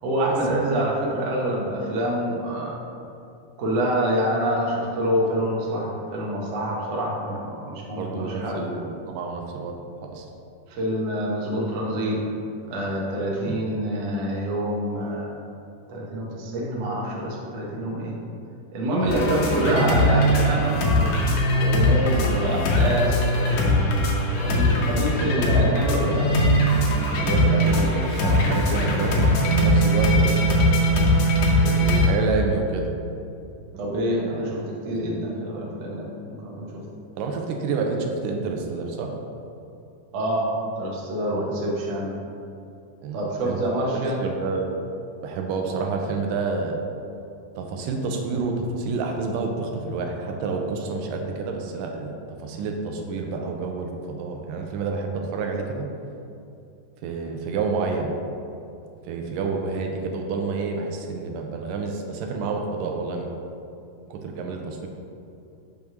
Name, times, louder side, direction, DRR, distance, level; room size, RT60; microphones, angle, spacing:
voice 1, 0.0-2.8 3.6-8.7 10.7-12.2 12.7-15.3 15.9-18.1 18.7-21.1 21.6-23.7 24.4-26.3 33.8-36.8 40.1-42.1 43.1-44.2, right 1 dB, 60° right, -4 dB, 1.9 m, -26 dB
voice 2, 8.0-9.8 10.1-10.3 13.5-13.6 19.0-19.9 22.0-22.1 27.2-30.4 31.5-32.9 34.8-35.2 37.2-39.1 43.0-43.6 44.2-44.8 45.2-46.8 47.6-55.9 57.0-58.1 59.1-63.3 64.1-64.9, right 4 dB, 90° right, 2 dB, 2.3 m, -29 dB
sound 1, 19.1-32.1, equal, 70° left, 1.8 m, -20 dB
6.4 x 3.6 x 5.9 m, 2.6 s
omnidirectional pair, 3.9 m